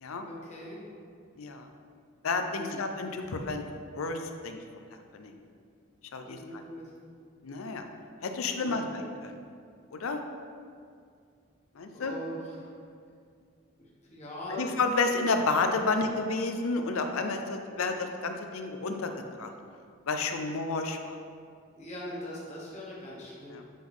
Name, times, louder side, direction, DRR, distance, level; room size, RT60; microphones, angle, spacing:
voice 1, 0.3-0.8 2.5-2.8 6.2-6.9 8.6-9.0 11.9-12.7 13.8-14.7 21.8-23.6, equal, 35° left, -6 dB, 1.3 m, -41 dB
voice 2, 1.4-1.7 2.2-3.6 3.9-4.6 5.1-5.4 6.1-6.4 7.4-7.8 8.2-9.4 9.9-10.2 11.8-12.1 14.5-19.1 19.4-19.5 20.1-21.2 23.5-23.6, left 3 dB, 90° left, 6 dB, 0.6 m, -30 dB
7.5 x 3.9 x 3.5 m, 2.3 s
head